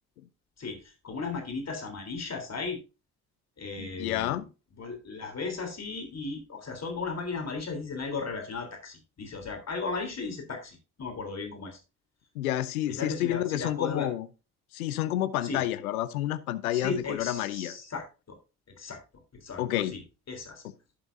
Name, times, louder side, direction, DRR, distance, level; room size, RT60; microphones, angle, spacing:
voice 1, 0.6-2.8 3.6-4.5 4.8-11.8 13.0-14.1 15.4-15.6 16.7-18.4 18.8-19.0 19.3-19.6 19.9-20.0 20.3-20.6, left 4 dB, 40° left, 3.5 m, -36 dB
voice 2, 3.8-4.5 12.3-14.3 14.7-17.8 19.6-20.0, left 13 dB, 85° left, 0.7 m, -29 dB
11.5 x 7.9 x 2.6 m
hypercardioid pair, 55°, 42 cm